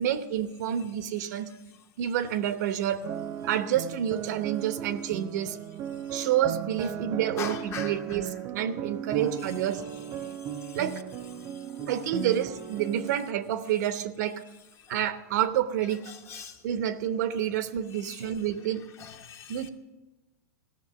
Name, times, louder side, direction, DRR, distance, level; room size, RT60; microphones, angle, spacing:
voice 1, 0.0-1.5 2.0-3.0 3.5-5.6 6.1-9.8 10.7-11.0 11.9-14.4 14.9-16.0 16.6-18.8 19.5-19.7, right 10 dB, 65° right, 0.9 m, -28 dB
sound 1, 3.0-13.3, right 9 dB, 30° right, 0.6 m, -36 dB
voice 2, 7.4-8.3 9.2-9.6 9.9-10.0 10.7-10.8 11.8-11.9 16.0-16.6 17.9-18.4 18.9-19.7, left 7 dB, 25° left, 1.0 m, -42 dB
15.5 x 6.7 x 6.9 m
supercardioid pair, 145°, 10 cm